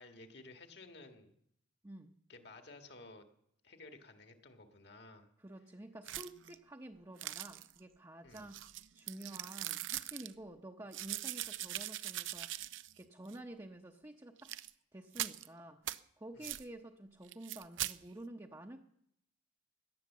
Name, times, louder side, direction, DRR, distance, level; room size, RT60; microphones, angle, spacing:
voice 1, 0.0-1.3 2.3-3.3 3.6-5.3 8.2-8.5 16.3-16.5, left 2 dB, 60° left, 6 dB, 1.8 m, -54 dB
voice 2, 1.8-2.1 5.4-8.7 8.9-14.5 14.9-15.8 16.2-18.8, right 1 dB, 20° right, 1 dB, 0.8 m, -50 dB
sound 1, 6.0-6.5 7.2-7.8 8.3-10.3 10.9-13.0 13.3-13.4 14.4-14.7 15.1-15.5 15.9-16.0 16.4-16.6 17.3-18.0, right 14 dB, 85° right, 0.5 m, -41 dB
17.5 x 11.0 x 7.3 m, 0.76 s
head